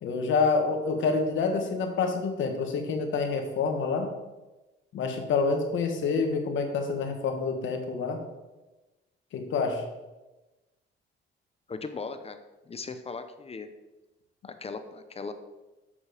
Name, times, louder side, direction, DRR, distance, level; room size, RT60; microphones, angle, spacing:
voice 1, 0.0-4.1 4.9-8.2 9.3-9.8, left 4 dB, 75° left, 5 dB, 1.5 m, -27 dB
voice 2, 11.7-12.4 12.7-13.7 14.4-15.3, left 4 dB, 30° left, 9 dB, 0.8 m, -38 dB
7.1 x 7.1 x 5.0 m, 1.1 s
cardioid pair, 90°, 20 cm